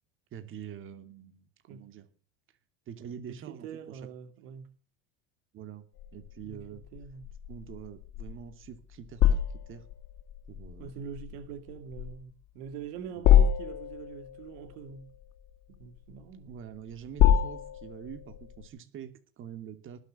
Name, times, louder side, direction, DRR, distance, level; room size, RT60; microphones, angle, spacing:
voice 1, 0.3-2.1 2.9-4.0 5.5-5.8 6.1-6.8 7.5-9.8 10.5-10.9 13.1-13.3 16.4-20.0, right 9 dB, 45° right, 2.6 m, -45 dB
voice 2, 3.3-4.7 6.4-6.6 6.9-7.3 10.8-15.1 15.7-16.5, right 7 dB, 75° right, 2.6 m, -44 dB
sound 1, 6.0-18.7, left 10 dB, 60° left, 2.3 m, -28 dB
19.5 x 7.3 x 6.6 m
supercardioid pair, 110°, 29 cm